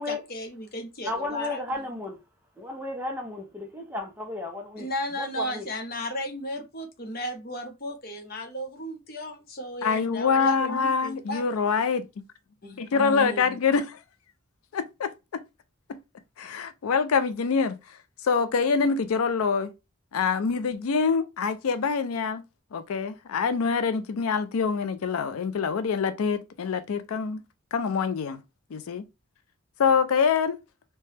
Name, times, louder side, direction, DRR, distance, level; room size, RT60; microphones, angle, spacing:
voice 1, 0.0-1.6 4.8-11.5 12.6-13.6, equal, 45° left, 0.7 m, -34 dB
voice 2, 1.0-2.2 2.6-4.9 5.2-5.7, left 2 dB, 10° right, 0.6 m, -34 dB
voice 3, 9.8-12.1 12.8-14.0 14.7-15.4 15.9-16.0 16.4-17.8 18.2-19.7 20.1-22.4 22.7-27.4 27.7-28.4 28.7-29.0 29.8-30.6, left 5 dB, 90° left, 0.4 m, -25 dB
3.3 x 2.2 x 2.8 m
head